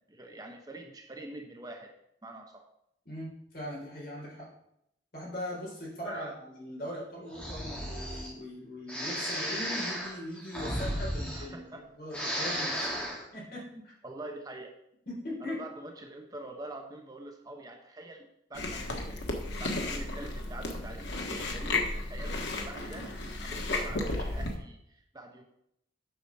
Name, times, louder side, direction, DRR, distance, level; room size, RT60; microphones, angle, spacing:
voice 1, 0.0-1.9 2.2-2.7 6.0-6.4 11.3-11.8 13.8-14.7 15.4-19.3 19.6-25.4, right 2 dB, 20° right, 3 dB, 0.8 m, -45 dB
voice 2, 3.1-4.5 5.1-12.9 13.3-13.9 15.1-15.6, left 1 dB, 50° left, -4 dB, 4.0 m, -40 dB
Breathing, 7.3-8.3 8.9-11.8 12.1-13.2, equal, 5° left, 1.8 m, -34 dB
Chewing mastication, 18.5-24.6, left 2 dB, 75° left, 1.3 m, -34 dB
8.0 x 5.0 x 6.4 m, 0.76 s
head